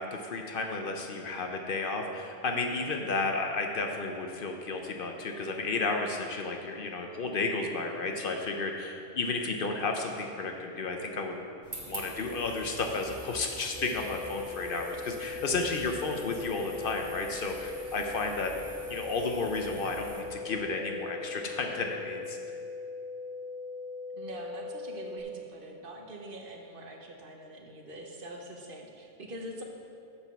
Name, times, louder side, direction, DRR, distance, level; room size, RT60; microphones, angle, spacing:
voice 1, 0.0-11.4 11.9-18.5 18.9-22.4, left 3 dB, 60° left, 3 dB, 0.8 m, -32 dB
sound 1, 11.6-20.2, right 1 dB, 25° right, 1.1 m, -46 dB
sound 2, 13.8-25.2, left 4 dB, 20° left, 0.6 m, -40 dB
voice 2, 24.1-29.6, right 1 dB, 55° right, 1 dB, 1.0 m, -44 dB
6.9 x 5.9 x 5.8 m, 2.6 s
omnidirectional pair, 1.1 m